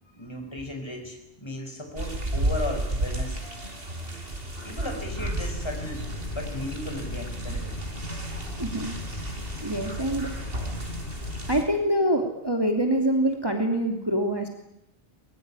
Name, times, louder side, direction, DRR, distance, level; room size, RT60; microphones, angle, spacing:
voice 1, 0.0-3.4 4.6-6.1 6.3-7.8, left 1 dB, 25° left, 3 dB, 5.0 m, -36 dB
sound 1, 2.0-11.6, right 1 dB, 55° right, 4.9 m, -33 dB
sound 2, 5.1-11.6, left 1 dB, 50° left, 5.0 m, -36 dB
voice 2, 8.6-8.9 9.6-10.3 11.5-14.5, right 1 dB, 20° right, 3 dB, 3.0 m, -25 dB
24.0 x 22.5 x 9.8 m, 0.83 s
omnidirectional pair, 1.1 m